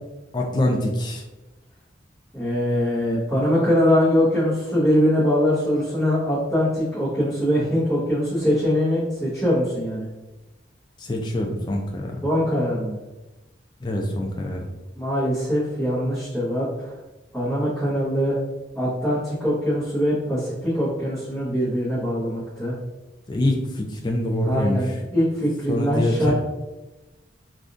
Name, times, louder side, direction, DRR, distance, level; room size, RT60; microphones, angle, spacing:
voice 1, 0.3-1.2 11.0-12.2 13.8-14.7 23.3-24.8 25.7-26.3, left 1 dB, 25° left, 0 dB, 0.3 m, -24 dB
voice 2, 2.3-10.0 12.2-12.9 15.0-16.9 17.3-18.4 18.7-22.7 24.4-26.3, equal, ahead, -15 dB, 1.1 m, -22 dB
3.5 x 2.4 x 2.5 m, 1.0 s
head